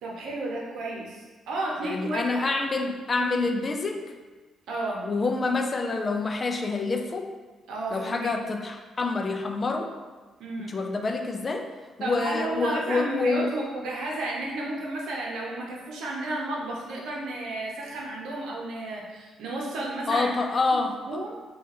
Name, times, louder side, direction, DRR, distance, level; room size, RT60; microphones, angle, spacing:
voice 1, 0.0-2.4 3.2-3.3 4.7-5.0 7.7-8.3 10.4-10.8 12.0-20.3 20.7-21.4, right 2 dB, 80° right, -2 dB, 0.8 m, -32 dB
voice 2, 1.8-4.1 5.0-7.3 7.9-9.9 10.7-11.7 12.0-13.5 20.1-21.0, left 3 dB, 35° left, 4 dB, 0.4 m, -27 dB
3.8 x 2.5 x 4.2 m, 1.3 s
cardioid pair, 90°, 0 cm